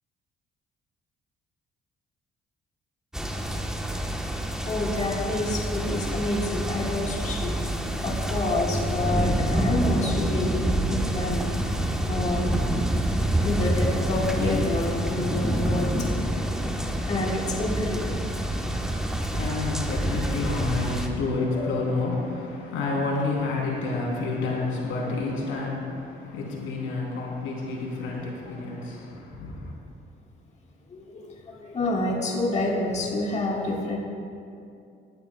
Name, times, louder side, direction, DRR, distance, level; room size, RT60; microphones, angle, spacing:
sound 1, 3.1-21.1, right 1 dB, 5° right, 1.1 m, -27 dB
voice 1, 4.7-7.5 8.0-11.6 12.0-16.4 17.1-18.2 21.6-21.7 30.9-34.0, left 2 dB, 35° left, -3 dB, 1.6 m, -28 dB
voice 2, 18.6-29.7, left 3 dB, 90° left, -3 dB, 3.2 m, -30 dB
18.5 x 12.5 x 2.3 m, 2.5 s
cardioid pair, 90°, 20 cm